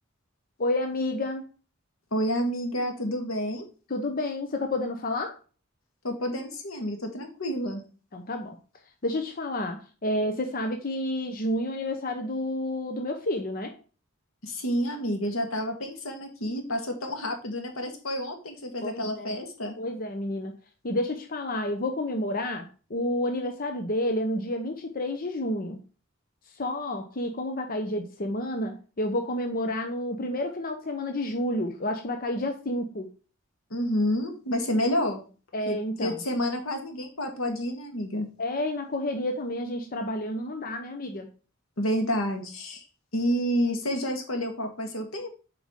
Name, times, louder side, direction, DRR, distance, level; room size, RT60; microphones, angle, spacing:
voice 1, 0.6-1.5 3.9-5.4 8.1-8.6 9.0-13.7 18.8-19.4 19.8-20.6 20.8-25.8 26.6-33.1 35.5-36.2 38.4-41.3, left 1 dB, 45° left, 5 dB, 0.8 m, -30 dB
voice 2, 2.1-3.6 6.0-7.8 14.4-19.8 33.7-35.2 35.6-38.3 41.8-42.8 43.1-45.3, equal, 90° left, 4 dB, 1.7 m, -29 dB
7.3 x 4.9 x 3.7 m, 0.36 s
head